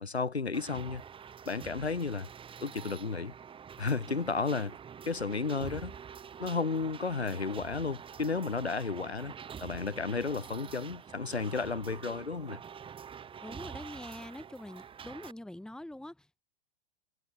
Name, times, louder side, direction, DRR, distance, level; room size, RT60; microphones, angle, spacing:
voice 1, 0.0-1.0 1.5-2.3 2.6-3.3 3.8-4.7 5.1-5.9 6.4-9.3 9.6-12.6, left 4 dB, 85° left, 1.5 m, -33 dB
sound 1, 0.5-15.3, right 7 dB, 15° right, 1.9 m, -46 dB
voice 2, 13.4-16.4, left 1 dB, ahead, 3.0 m, -44 dB
figure-of-eight pair, 100°, 31 cm